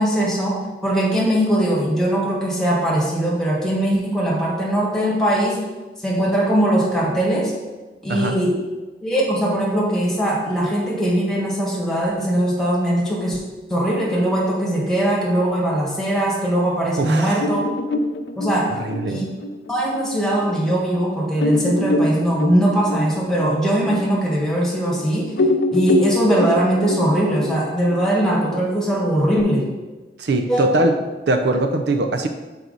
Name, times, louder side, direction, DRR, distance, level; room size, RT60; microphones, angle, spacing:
voice 1, 0.0-5.6 6.0-7.5 8.0-8.5 9.0-13.4 13.7-17.6 18.3-18.8 19.0-19.2 19.7-25.4 25.7-29.7 30.5-30.7, right 1 dB, 5° left, -4 dB, 1.5 m, -20 dB
voice 2, 17.0-17.5 18.7-19.2 30.2-30.9 31.3-32.3, right 2 dB, 70° right, 6 dB, 0.5 m, -21 dB
sound 1, 17.4-20.5 20.9-21.0 21.4-25.0 25.3-29.4, left 1 dB, 80° left, 0.5 m, -24 dB
6.9 x 4.7 x 3.9 m, 1.2 s
head